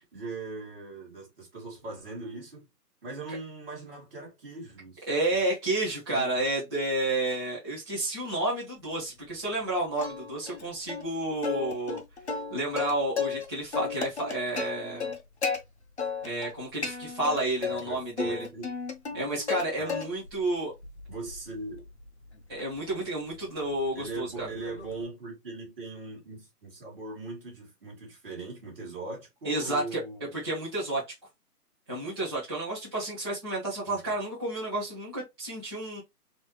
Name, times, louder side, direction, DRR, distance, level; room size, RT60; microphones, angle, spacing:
voice 1, 0.1-2.7 3.0-5.4 6.1-6.4 17.7-18.7 19.1-19.2 19.8-20.0 21.1-21.9 23.9-30.3 33.8-34.1, right 3 dB, 35° right, 2.2 m, -40 dB
voice 2, 5.1-12.0 12.5-15.1 16.2-18.5 19.1-20.7 22.5-24.5 29.4-30.0 30.4-31.0 31.9-36.0, right 2 dB, 15° right, 1.2 m, -31 dB
Plucked string instrument, 10.0-10.6 10.9-11.0 11.4-13.4 13.7-15.6 16.0-16.5 16.8-17.8 18.2-19.6 19.9-20.4 20.8-25.0, left 5 dB, 45° left, 0.9 m, -34 dB
4.1 x 3.0 x 3.1 m
hypercardioid pair, 170°, 48 cm